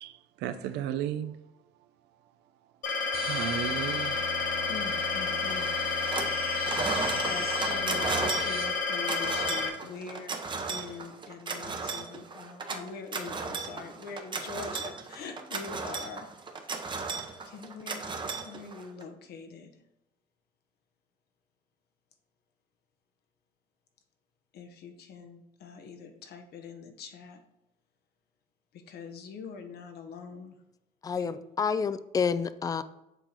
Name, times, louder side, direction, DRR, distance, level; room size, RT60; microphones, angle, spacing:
voice 1, 0.0-1.3 3.2-4.5, right 10 dB, 85° right, 0.6 m, -35 dB
sound 1, 2.8-9.7, left 4 dB, 55° left, 1.3 m, -30 dB
sound 2, 3.1-8.6, right 1 dB, 65° right, 2.4 m, -41 dB
voice 2, 4.6-5.7 6.9-16.3 17.5-18.1 18.4-19.7 24.5-27.4 28.7-30.6 31.1-31.4, left 5 dB, 70° left, 1.0 m, -43 dB
sound 3, 5.5-6.4 6.6-19.0, right 4 dB, 30° right, 0.9 m, -35 dB
voice 3, 31.0-32.8, left 6 dB, 20° left, 0.3 m, -29 dB
7.0 x 3.9 x 4.4 m
cardioid pair, 110°, 17 cm